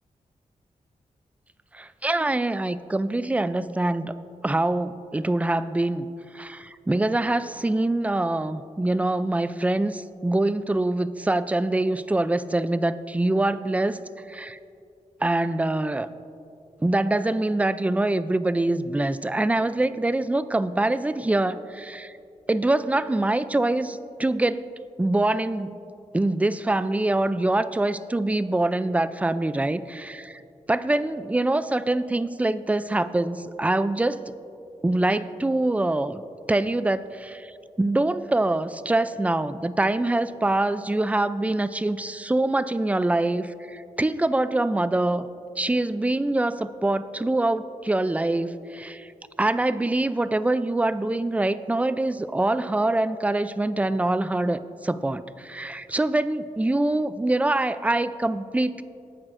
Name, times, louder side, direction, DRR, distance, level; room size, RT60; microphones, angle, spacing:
voice 1, 1.7-4.1 4.4-6.1 6.3-14.0 14.3-14.6 15.2-16.1 16.8-22.2 22.5-24.7 25.0-25.8 26.1-30.4 30.7-34.2 34.8-36.2 36.5-45.3 45.6-49.1 49.4-58.8, right 2 dB, 10° right, 14 dB, 0.3 m, -24 dB
18.5 x 8.8 x 2.5 m, 2.5 s
wide cardioid pair, 95°, 14 cm